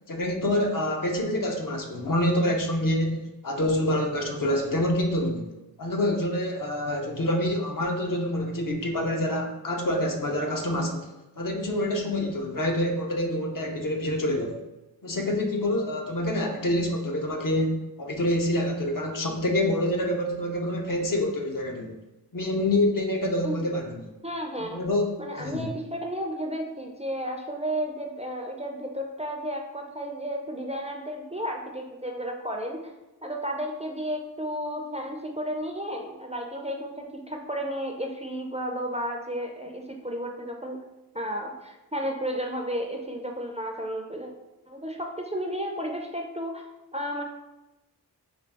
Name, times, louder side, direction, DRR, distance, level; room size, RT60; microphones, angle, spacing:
voice 1, 0.1-5.4 5.8-11.1 11.4-14.6 15.0-22.0 22.3-24.1 24.6-25.7, left 1 dB, 55° left, 2 dB, 0.6 m, -27 dB
voice 2, 24.2-24.8 25.2-32.8 33.2-40.8 41.1-44.3 44.7-46.7 46.9-47.2, equal, 20° right, 1 dB, 0.4 m, -33 dB
4.0 x 2.3 x 3.4 m, 1.0 s
wide cardioid pair, 65°, 39 cm